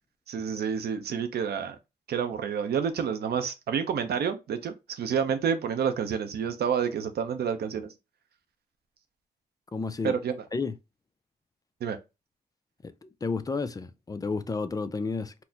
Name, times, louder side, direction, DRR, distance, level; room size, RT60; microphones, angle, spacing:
voice 1, 0.3-1.8 2.1-7.9 10.0-10.4 11.8-12.0, right 7 dB, 70° right, 0.6 m, -29 dB
voice 2, 9.7-10.2 10.5-10.7 12.8-15.3, left 4 dB, 20° left, 0.4 m, -31 dB
4.2 x 2.0 x 2.7 m
cardioid pair, 90°, 17 cm